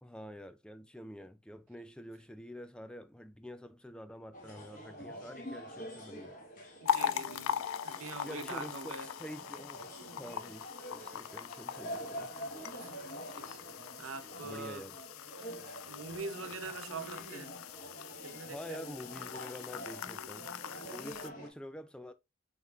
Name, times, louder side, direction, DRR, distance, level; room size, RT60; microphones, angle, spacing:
voice 1, 0.0-6.4 8.2-12.3 14.4-15.0 18.5-20.5 20.9-22.1, equal, 5° left, 0.3 m, -47 dB
sound 1, 4.3-21.5, equal, 40° left, 1.2 m, -47 dB
voice 2, 6.8-9.1 12.8-13.6 14.0-14.8 15.8-17.6 18.2-18.8, right 4 dB, 85° right, 0.6 m, -44 dB
sound 2, 6.9-21.3, left 9 dB, 90° left, 0.3 m, -41 dB
5.4 x 3.8 x 2.4 m
head